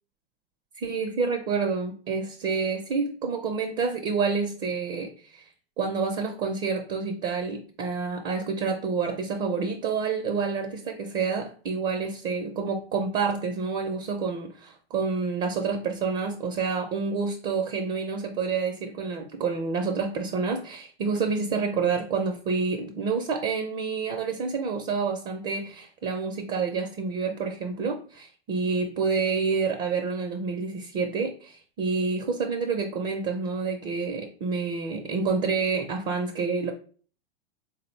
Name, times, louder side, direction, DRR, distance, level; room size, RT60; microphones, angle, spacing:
voice 1, 0.8-5.5 5.8-36.7, right 5 dB, 30° right, 5 dB, 0.5 m, -28 dB
3.7 x 2.0 x 3.1 m, 0.42 s
hypercardioid pair, 105°, 30 cm